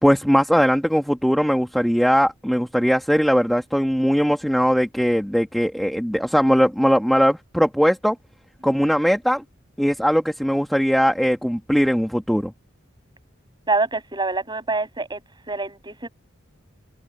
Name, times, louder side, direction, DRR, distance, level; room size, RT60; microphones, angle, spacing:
voice 1, 0.0-8.2 8.6-9.4 9.8-12.5, equal, ahead, 1.1 m, -20 dB
voice 2, 13.7-15.2 15.5-16.1, right 3 dB, 20° right, 5.6 m, -25 dB
head